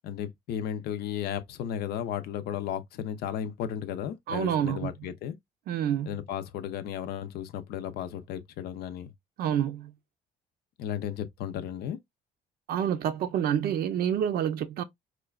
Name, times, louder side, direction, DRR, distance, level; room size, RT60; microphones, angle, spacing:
voice 1, 0.0-5.4 6.1-9.1 10.8-12.0, left 9 dB, 70° left, 0.6 m, -34 dB
voice 2, 4.3-4.9 5.7-6.2 9.4-9.9 12.7-14.8, right 9 dB, 65° right, 0.6 m, -28 dB
4.3 x 2.2 x 2.3 m
cardioid pair, 110°, 17 cm